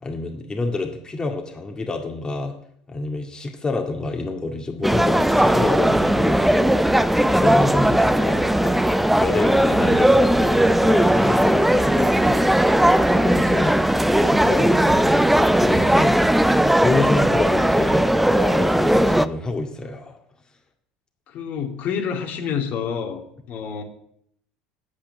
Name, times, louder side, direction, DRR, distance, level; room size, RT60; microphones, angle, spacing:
voice 1, 0.0-2.5 2.9-6.8 7.3-8.8 9.2-12.4 13.1-13.7 14.1-16.2 16.8-20.2, left 3 dB, 20° left, 3 dB, 2.1 m, -27 dB
sound 1, 4.8-19.3, right 1 dB, 5° right, 0.6 m, -18 dB
voice 2, 21.3-23.2 23.5-23.8, left 7 dB, 55° left, 3 dB, 2.3 m, -28 dB
8.6 x 8.5 x 9.0 m, 0.69 s
hypercardioid pair, 75°, 3 cm